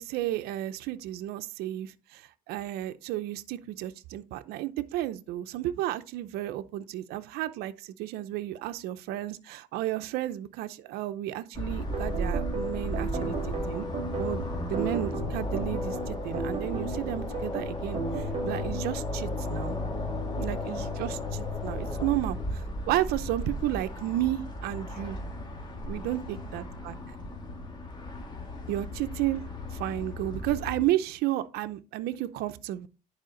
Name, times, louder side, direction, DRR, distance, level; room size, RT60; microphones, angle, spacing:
voice 1, 0.0-13.9 14.2-19.8 20.4-25.2 25.9-26.9 28.7-29.4 29.8-32.9, right 14 dB, 85° right, 0.6 m, -32 dB
sound 1, 11.5-30.8, left 1 dB, 30° left, 2.4 m, -35 dB
sound 2, 11.9-19.0, right 3 dB, 40° right, 2.2 m, -35 dB
10.5 x 4.9 x 3.8 m
cardioid pair, 110°, 16 cm